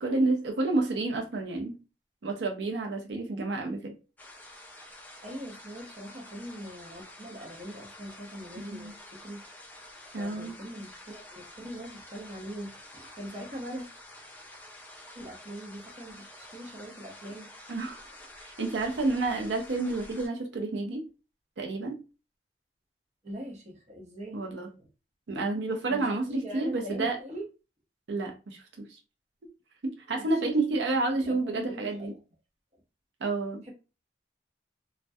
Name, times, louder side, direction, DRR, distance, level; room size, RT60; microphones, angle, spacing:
voice 1, 0.0-1.8 2.2-3.9 8.7-8.9 10.1-10.5 17.7-18.0 18.4-21.0 21.6-22.0 24.3-24.7 25.3-27.2 28.1-29.0 29.8-32.1 33.2-33.6, right 2 dB, 85° right, 0.5 m, -30 dB
sound 1, 4.2-20.3, left 1 dB, 10° left, 0.3 m, -49 dB
voice 2, 5.2-9.4 10.2-13.9 15.1-17.5 18.0-18.3 23.2-24.4 24.8-24.9 25.9-27.4 28.2-28.3 30.2-30.8 31.1-32.2 32.7-32.8 33.6-33.7, equal, 40° right, 0.7 m, -42 dB
2.2 x 2.1 x 2.6 m
head